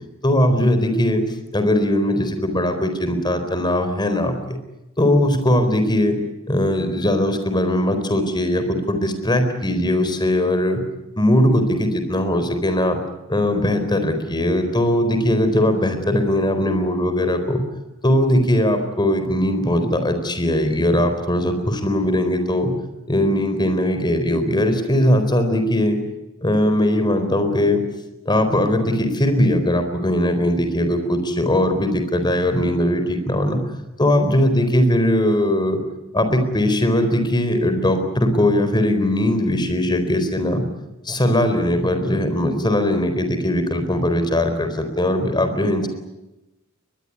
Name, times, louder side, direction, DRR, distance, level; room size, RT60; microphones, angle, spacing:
voice 1, 0.2-1.2 1.5-4.6 5.0-6.2 6.5-10.8 11.2-13.0 13.3-17.6 18.0-22.7 23.1-26.0 26.4-27.8 28.3-33.6 34.0-35.8 36.1-40.6 41.1-45.9, left 1 dB, 20° left, 8 dB, 4.2 m, -20 dB
23.0 x 21.0 x 9.7 m, 0.99 s
head